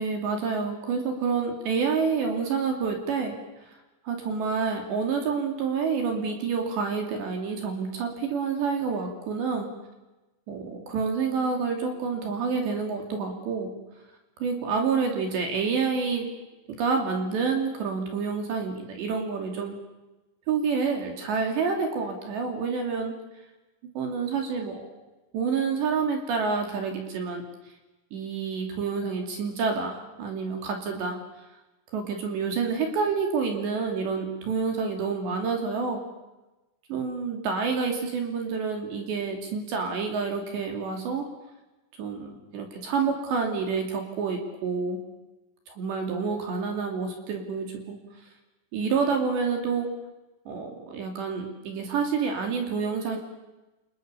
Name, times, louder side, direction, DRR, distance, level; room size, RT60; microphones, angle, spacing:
voice 1, 0.0-3.4 3.7-3.8 4.1-9.7 10.5-13.7 14.4-16.3 16.8-19.8 20.5-23.1 23.9-24.9 25.3-27.4 28.1-31.2 31.9-36.1 36.9-41.3 42.0-45.0 45.7-48.0 48.7-49.9 50.5-53.2, right 5 dB, 60° right, 3 dB, 4.8 m, -28 dB
29.0 x 27.5 x 7.0 m, 1.1 s
omnidirectional pair, 6.0 m